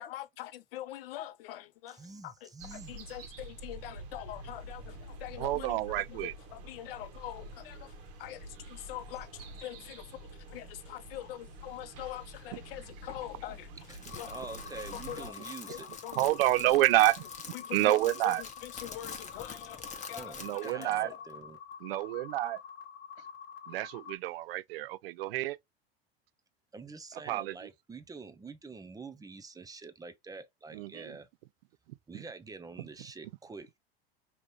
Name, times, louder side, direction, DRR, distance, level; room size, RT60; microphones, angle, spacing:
voice 1, 0.0-13.9 14.1-14.3 14.7-15.4 15.6-16.3 16.7-16.8 17.5-21.2, left 13 dB, 65° left, 0.7 m, -44 dB
voice 2, 2.0-2.9 13.9-14.0 14.3-15.9 20.1-21.6 26.7-31.3 32.1-33.8, right 4 dB, 10° right, 0.7 m, -46 dB
sound 1, 2.6-15.3, right 1 dB, 50° right, 1.4 m, -47 dB
voice 3, 5.4-6.3 16.2-17.2 17.7-18.4 20.4-21.1 21.8-22.6 23.7-25.6 27.3-27.5 30.7-31.2 32.1-32.2, right 16 dB, 65° right, 0.4 m, -28 dB
Crackle, 13.8-20.9, left 5 dB, 25° left, 1.2 m, -47 dB
sound 2, 14.1-24.2, left 7 dB, 45° left, 1.3 m, -47 dB
5.1 x 3.0 x 3.1 m
hypercardioid pair, 85°, 31 cm